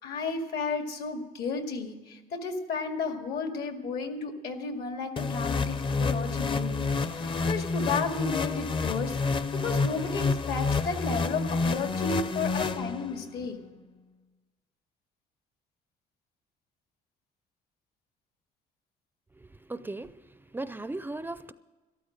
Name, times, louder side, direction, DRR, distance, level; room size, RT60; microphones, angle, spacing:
voice 1, 0.0-13.6, left 4 dB, 70° left, 5 dB, 2.0 m, -33 dB
sound 1, 5.2-13.3, left 4 dB, 30° left, 0.6 m, -29 dB
voice 2, 19.3-21.5, right 2 dB, 10° right, 14 dB, 0.4 m, -38 dB
13.0 x 12.5 x 6.5 m, 1.2 s
cardioid pair, 110°, 17 cm